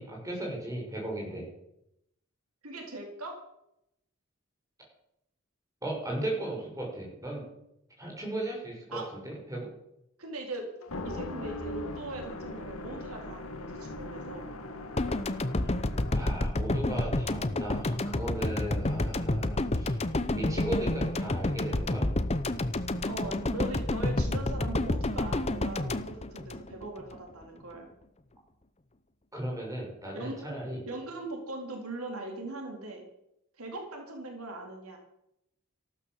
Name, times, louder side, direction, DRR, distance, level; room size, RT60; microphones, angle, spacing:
voice 1, 0.0-1.4 5.8-7.4 8.0-9.7 16.1-20.0 20.3-22.1 29.3-30.8, right 1 dB, 15° right, -2 dB, 6.6 m, -36 dB
voice 2, 2.6-3.3 8.9-9.0 10.2-10.7 11.0-14.5 23.0-27.9 30.1-30.4 30.9-33.1 33.6-35.0, right 2 dB, 85° right, 2 dB, 4.1 m, -40 dB
sound 1, 10.8-16.4, left 1 dB, 75° left, 2.0 m, -40 dB
sound 2, 15.0-27.2, left 1 dB, 30° left, 0.8 m, -29 dB
14.5 x 12.5 x 7.4 m, 0.81 s
head